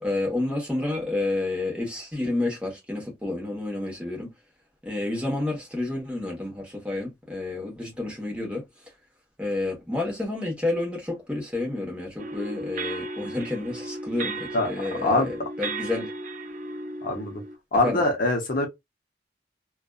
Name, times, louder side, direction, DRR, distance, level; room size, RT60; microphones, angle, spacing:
voice 1, 0.0-4.3 4.8-8.6 9.4-16.1 17.8-18.0, left 2 dB, 5° right, 1.0 m, -30 dB
sound 1, 12.2-17.6, right 2 dB, 45° right, 0.5 m, -35 dB
voice 2, 17.0-17.4 17.7-18.7, left 2 dB, 50° left, 0.7 m, -23 dB
2.5 x 2.3 x 2.3 m
head